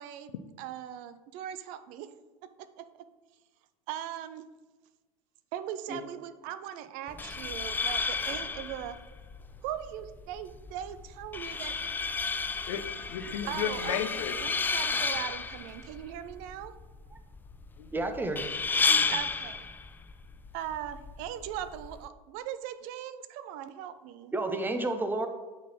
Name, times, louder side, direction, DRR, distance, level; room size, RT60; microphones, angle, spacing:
voice 1, 0.0-2.1 2.6-2.9 3.9-4.4 5.5-9.0 9.6-11.7 13.4-16.7 19.1-19.7 20.5-24.3, right 11 dB, 50° right, 12 dB, 0.5 m, -39 dB
sound 1, 7.1-22.1, left 4 dB, 10° left, 0.3 m, -33 dB
voice 2, 12.7-14.3 17.8-17.9 18.8-19.1, left 9 dB, 65° left, 10 dB, 0.7 m, -34 dB
voice 3, 17.9-18.5 24.3-25.3, right 2 dB, 10° right, 7 dB, 0.8 m, -30 dB
8.5 x 4.0 x 4.6 m, 1.2 s
figure-of-eight pair, 80°, 18 cm